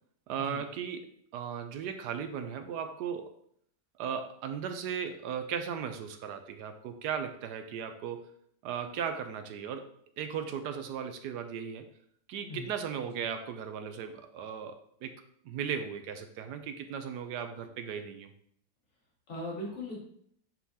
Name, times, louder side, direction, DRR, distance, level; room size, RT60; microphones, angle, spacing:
voice 1, 0.3-3.3 4.0-8.3 8.6-9.9 10.2-11.9 12.3-18.3, right 7 dB, 80° right, 8 dB, 1.2 m, -37 dB
voice 2, 19.3-20.0, left 1 dB, 45° left, -4 dB, 2.2 m, -39 dB
9.4 x 3.8 x 2.8 m, 0.66 s
omnidirectional pair, 1.8 m